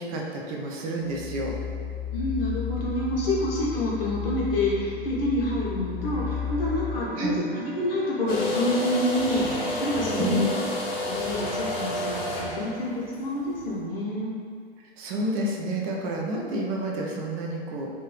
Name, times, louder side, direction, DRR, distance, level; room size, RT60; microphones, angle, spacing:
voice 1, 0.0-1.5 7.2-7.3 10.2-10.6 15.0-17.9, right 1 dB, 35° right, -1 dB, 0.5 m, -29 dB
sound 1, 1.0-6.9, left 8 dB, 60° right, 0.9 m, -33 dB
voice 2, 2.1-10.6 11.0-14.3, left 1 dB, 65° left, -5 dB, 1.1 m, -28 dB
Bowed string instrument, 6.0-11.6, right 7 dB, 90° right, 0.5 m, -43 dB
sound 2, 8.3-13.7, left 1 dB, 45° left, 0.7 m, -30 dB
3.2 x 2.6 x 3.2 m, 2.1 s
figure-of-eight pair, 105°, 31 cm